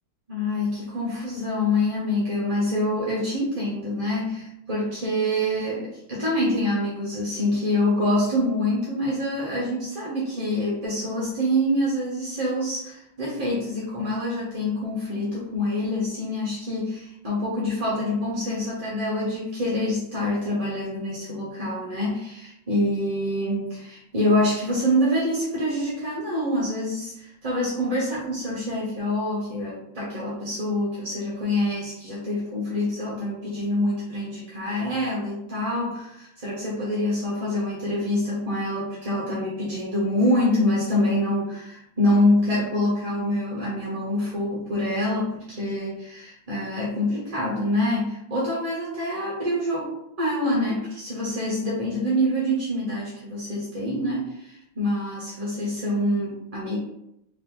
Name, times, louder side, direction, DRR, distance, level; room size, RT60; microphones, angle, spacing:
voice 1, 0.3-56.8, left 1 dB, 30° right, -7 dB, 0.7 m, -26 dB
3.6 x 2.9 x 3.6 m, 0.79 s
omnidirectional pair, 2.0 m